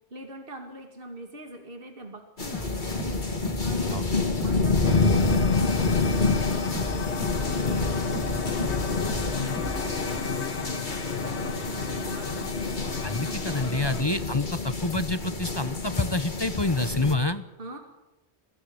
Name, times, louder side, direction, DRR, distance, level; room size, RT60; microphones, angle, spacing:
voice 1, 0.1-4.1 4.4-8.8 9.1-12.6 13.2-14.1 17.6-17.8, right 1 dB, 55° right, 4 dB, 2.6 m, -42 dB
sound 1, 2.4-17.1, left 3 dB, 45° left, 2.3 m, -28 dB
sound 2, 2.5-10.0, left 1 dB, 5° left, 2.9 m, -37 dB
sound 3, 4.8-14.0, left 6 dB, 85° left, 1.6 m, -34 dB
voice 2, 13.0-17.4, left 2 dB, 25° left, 11 dB, 0.9 m, -27 dB
22.5 x 16.5 x 10.0 m, 0.97 s
omnidirectional pair, 1.1 m